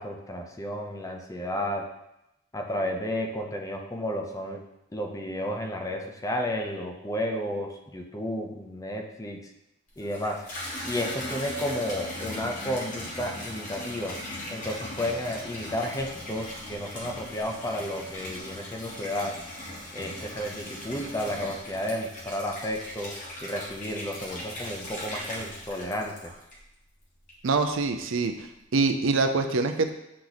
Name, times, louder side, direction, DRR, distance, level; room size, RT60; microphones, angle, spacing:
voice 1, 0.0-1.9 2.5-4.6 4.9-9.4 10.0-10.5 10.8-14.2 14.5-19.4 19.9-26.3, left 1 dB, 15° left, 2 dB, 0.6 m, -32 dB
Water tap faucet / Bathtub (filling or washing), 9.9-26.8 27.3-27.9, left 1 dB, 40° left, 1.5 m, -39 dB
voice 2, 27.4-28.3 28.7-29.9, right 3 dB, 70° right, 7 dB, 0.5 m, -24 dB
8.4 x 3.0 x 4.0 m, 0.87 s
head